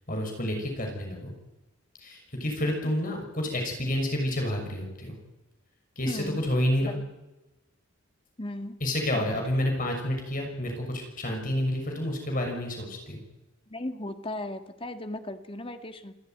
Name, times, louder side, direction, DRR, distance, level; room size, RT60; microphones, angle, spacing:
voice 1, 0.1-1.3 2.0-5.2 6.0-7.0 8.8-13.2, left 1 dB, 40° left, 2 dB, 6.3 m, -29 dB
voice 2, 6.1-6.4 6.8-7.0 8.4-8.8 9.1-9.3 13.7-16.1, left 1 dB, 25° left, 8 dB, 1.8 m, -36 dB
28.0 x 14.5 x 9.3 m, 1.0 s
head